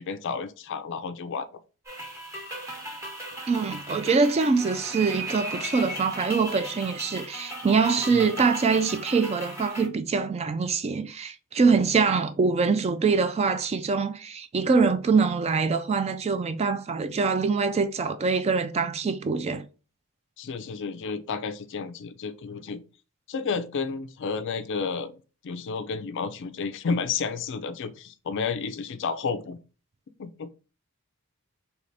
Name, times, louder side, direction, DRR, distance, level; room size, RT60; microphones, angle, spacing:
voice 1, 0.0-1.5 8.1-8.2 20.4-22.8 23.3-29.6 30.2-30.5, left 5 dB, 55° left, 0.4 m, -31 dB
sound 1, 1.8-9.9, right 1 dB, 15° right, 1.2 m, -37 dB
voice 2, 3.5-19.6, right 4 dB, 30° right, 0.3 m, -24 dB
3.3 x 2.9 x 4.1 m
head